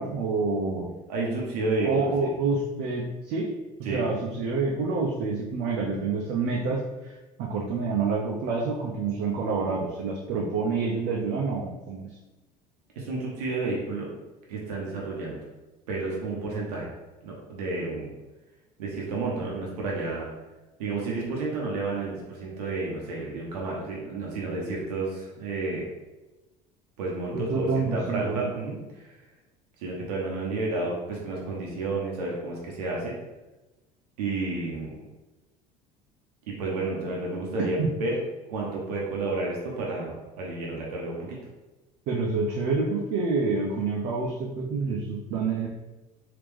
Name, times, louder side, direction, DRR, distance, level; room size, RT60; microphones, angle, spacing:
voice 1, 0.0-0.9 1.8-3.5 3.8-12.2 27.3-28.5 37.8-37.9 42.1-45.7, right 4 dB, 60° right, -2 dB, 0.6 m, -28 dB
voice 2, 1.1-2.3 3.8-4.0 13.0-14.1 14.5-15.4 15.9-16.9 17.2-18.1 18.8-20.3 20.8-25.9 27.0-29.2 29.8-33.2 34.2-35.0 36.5-38.1 38.5-41.4, right 3 dB, 85° right, -3 dB, 0.8 m, -31 dB
3.5 x 2.8 x 3.2 m, 1.1 s
hypercardioid pair, 75°, 20 cm